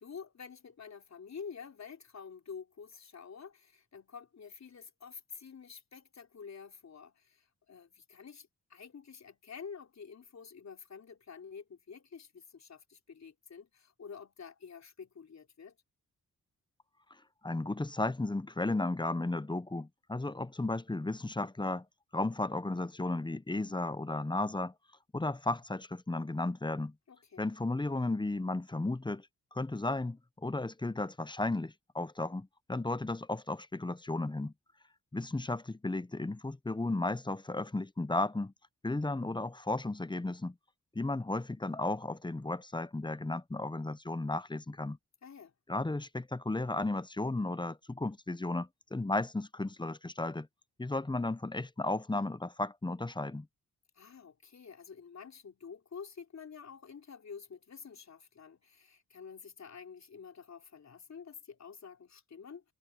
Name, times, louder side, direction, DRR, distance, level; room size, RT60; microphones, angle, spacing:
voice 1, 0.0-15.8 27.1-27.4 45.2-45.5 54.0-62.6, left 6 dB, 55° left, 3.8 m, -49 dB
voice 2, 17.4-21.8 22.1-24.7 25.1-26.9 27.4-34.5 35.1-38.5 38.8-40.5 40.9-45.0 45.7-50.5 50.8-53.5, left 2 dB, 15° left, 0.8 m, -34 dB
cardioid pair, 60°, 33 cm